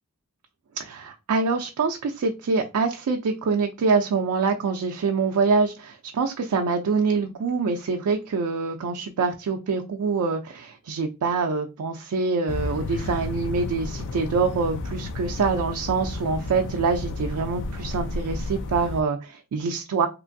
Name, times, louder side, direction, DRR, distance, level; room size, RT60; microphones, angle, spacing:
voice 1, 0.8-20.1, right 4 dB, 85° right, 4 dB, 0.4 m, -25 dB
sound 1, 12.5-19.0, left 2 dB, 55° left, 0.4 m, -32 dB
3.0 x 2.4 x 2.5 m, 0.28 s
head